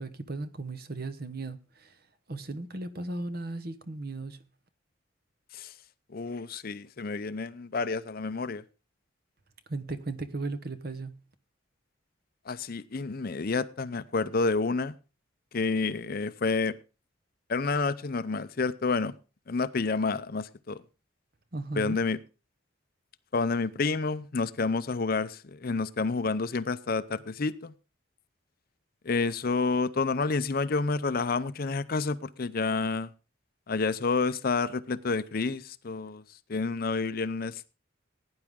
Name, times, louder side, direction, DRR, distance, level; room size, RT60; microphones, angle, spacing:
voice 1, 0.0-2.0 2.3-4.4 9.7-11.2 21.5-22.0, right 2 dB, 50° right, 1.1 m, -36 dB
voice 2, 6.1-8.6 12.5-15.0 15.5-16.8 17.5-19.1 19.5-20.8 21.7-22.2 23.3-27.7 29.0-33.1 33.7-36.2 36.5-37.7, left 4 dB, 45° left, 0.5 m, -29 dB
16.5 x 9.6 x 3.7 m
head